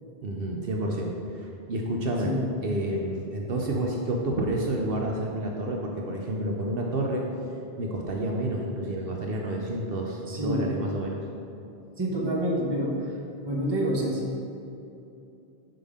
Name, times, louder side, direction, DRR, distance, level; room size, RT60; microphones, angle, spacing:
voice 1, 0.2-2.3 2.6-7.2 7.8-11.2, right 1 dB, 65° right, 0 dB, 0.9 m, -29 dB
voice 2, 10.3-10.7 12.0-13.0 13.5-14.4, equal, 25° right, -2 dB, 1.0 m, -27 dB
5.8 x 5.3 x 4.9 m, 2.8 s
omnidirectional pair, 1.0 m